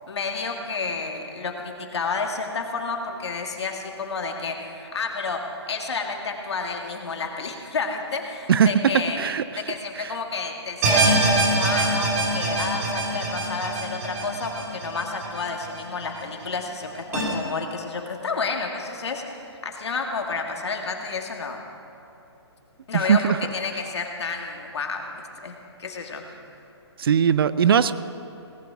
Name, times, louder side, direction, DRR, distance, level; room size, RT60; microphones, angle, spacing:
voice 1, 0.1-9.2 9.7-21.6 22.9-26.2, left 4 dB, 70° left, 2 dB, 2.0 m, -30 dB
voice 2, 9.2-10.1 22.9-23.4 27.0-27.9, right 7 dB, 55° right, 15 dB, 0.5 m, -20 dB
sound 1, 10.8-16.0 16.4-16.5 17.1-17.2, right 2 dB, 35° right, 3.1 m, -24 dB
18.0 x 11.0 x 4.8 m, 2.9 s
hypercardioid pair, 150°, 15 cm